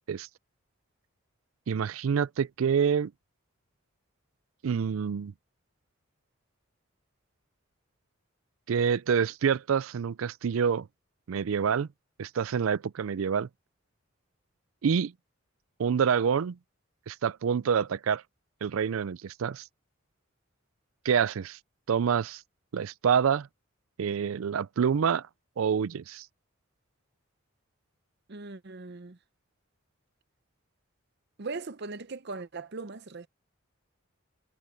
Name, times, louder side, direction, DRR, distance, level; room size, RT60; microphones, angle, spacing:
voice 1, 1.7-3.1 4.6-5.3 8.7-10.9 11.3-11.9 12.2-13.5 14.8-15.1 15.8-16.6 17.1-18.2 18.6-19.6 21.0-21.6 21.9-22.4 22.7-23.5 24.0-25.2 25.6-26.3, right 7 dB, 75° right, 0.4 m, -27 dB
voice 2, 28.3-29.2 31.4-33.3, right 3 dB, 55° right, 0.8 m, -39 dB
head